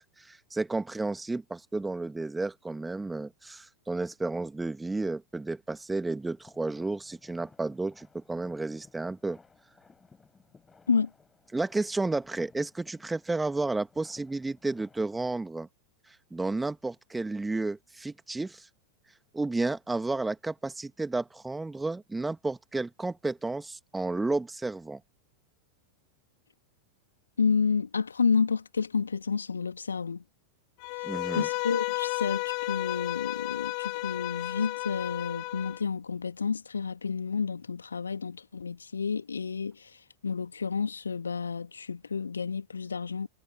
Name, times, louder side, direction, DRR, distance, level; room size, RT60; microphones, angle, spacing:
voice 1, 0.0-9.4 11.5-15.7 16.3-18.7 19.3-25.0 31.0-31.5, right 3 dB, 10° right, 2.1 m, -32 dB
sound 1, 6.2-15.4, left 4 dB, 15° left, 5.0 m, -58 dB
voice 2, 27.4-30.2 30.9-31.1 31.3-40.0 40.2-43.3, left 5 dB, 75° left, 2.3 m, -30 dB
Bowed string instrument, 30.8-35.8, left 40 dB or more, 45° left, 1.6 m, -33 dB
figure-of-eight pair, 90°, 0 cm